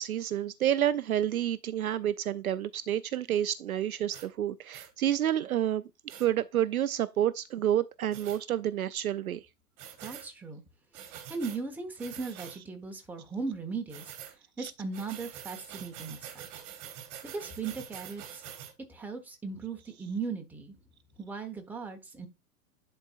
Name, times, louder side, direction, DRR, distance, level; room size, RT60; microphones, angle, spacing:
voice 1, 0.0-5.8 6.2-9.4 14.6-14.7, right 11 dB, 65° right, 0.6 m, -29 dB
sound 1, 4.1-4.3 4.7-4.9 6.1-6.3 8.1-8.4 9.8-10.3 10.9-11.6 12.0-12.6 13.9-14.3 14.9-18.7, right 10 dB, 30° right, 1.5 m, -45 dB
voice 2, 10.0-10.6 11.3-14.1 14.6-16.5 17.2-18.4 18.9-20.8 21.2-22.3, right 4 dB, 5° right, 1.1 m, -37 dB
10.5 x 4.4 x 2.4 m
figure-of-eight pair, 110°, 47 cm